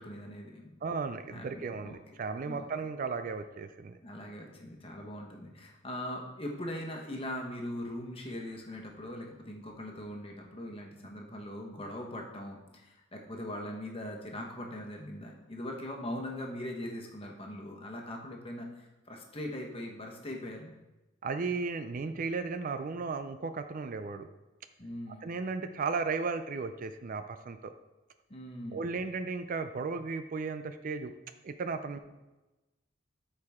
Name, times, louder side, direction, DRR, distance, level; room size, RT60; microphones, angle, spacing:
voice 1, 0.0-1.0 1.3-2.1 2.4-2.7 4.0-20.7 24.8-25.3 28.3-28.9, left 1 dB, 30° left, 1 dB, 1.2 m, -41 dB
voice 2, 0.8-4.0 21.2-24.3 25.2-27.7 28.7-31.1 31.4-32.0, right 4 dB, 40° right, 9 dB, 0.4 m, -35 dB
13.0 x 4.8 x 3.6 m, 1.1 s
head